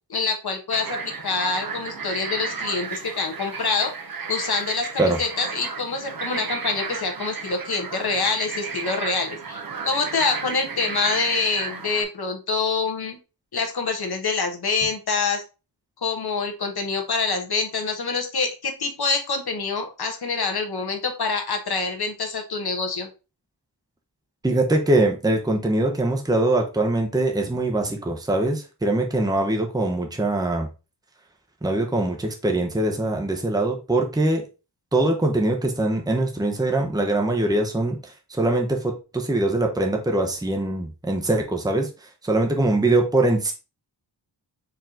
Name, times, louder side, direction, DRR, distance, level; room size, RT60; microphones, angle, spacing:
voice 1, 0.1-3.9 4.3-13.2 13.5-15.4 16.0-23.1, left 4 dB, 60° left, 3 dB, 1.2 m, -26 dB
sound 1, 0.7-12.0, right 5 dB, 55° right, 0.8 m, -33 dB
voice 2, 24.4-30.7 31.6-34.4 34.9-38.0 38.3-41.9 42.2-43.5, right 2 dB, 10° right, 2 dB, 0.8 m, -22 dB
4.6 x 3.0 x 3.7 m, 0.30 s
wide cardioid pair, 105°, 42 cm